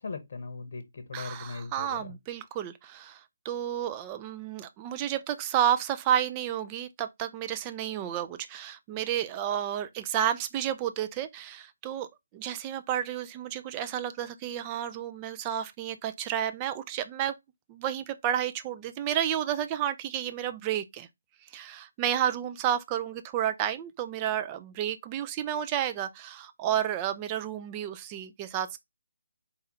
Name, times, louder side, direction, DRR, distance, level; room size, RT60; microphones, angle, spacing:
voice 1, 0.0-2.2, left 4 dB, 50° left, 0.9 m, -39 dB
voice 2, 1.1-12.1 12.3-17.3 17.7-21.1 21.5-28.8, right 10 dB, 20° right, 0.4 m, -31 dB
4.0 x 2.4 x 4.0 m
figure-of-eight pair, 145°, 0 cm